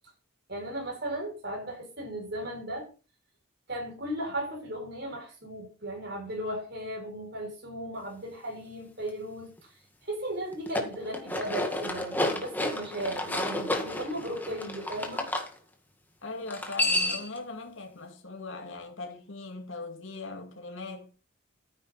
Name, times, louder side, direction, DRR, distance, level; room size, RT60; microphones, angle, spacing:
voice 1, 0.5-2.9 3.7-9.7 10.0-15.3, right 1 dB, 50° right, 6.8 m, -36 dB
sound 1, 10.5-15.5 16.5-17.4, left 1 dB, 10° left, 1.8 m, -30 dB
voice 2, 16.2-21.1, left 3 dB, 60° left, 2.6 m, -40 dB
13.5 x 9.6 x 4.2 m
head